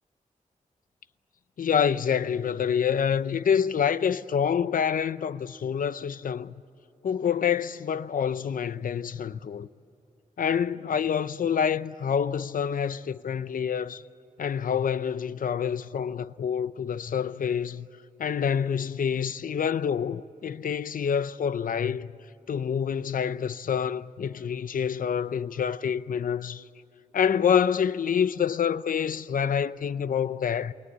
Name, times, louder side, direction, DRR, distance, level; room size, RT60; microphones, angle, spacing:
voice 1, 1.6-6.5 7.0-9.7 10.4-14.0 14.4-17.9 18.2-22.1 22.5-26.7 27.1-30.7, left 7 dB, 85° left, 0.7 m, -27 dB
29.0 x 21.0 x 8.1 m
wide cardioid pair, 130°, 14 cm